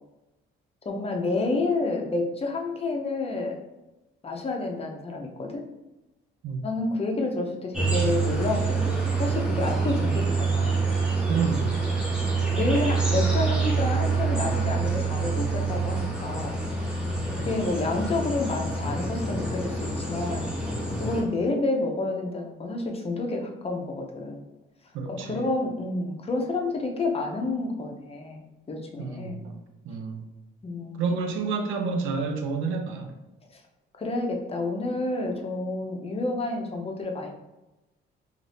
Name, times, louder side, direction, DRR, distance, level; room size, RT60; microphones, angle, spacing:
voice 1, 0.8-3.6 4.2-5.7 6.6-10.8 12.5-16.6 17.5-20.5 20.9-24.4 25.1-29.4 30.6-31.1 33.5-33.6 34.0-37.3, left 2 dB, 30° left, 2 dB, 0.6 m, -29 dB
sound 1, 7.7-21.2, right 4 dB, 5° right, 0.9 m, -26 dB
voice 2, 11.3-11.8 17.4-17.5 24.9-25.4 29.0-30.3 31.0-33.1, right 4 dB, 90° right, 4 dB, 0.5 m, -29 dB
2.6 x 2.4 x 3.3 m, 1.0 s
cardioid pair, 90°, 20 cm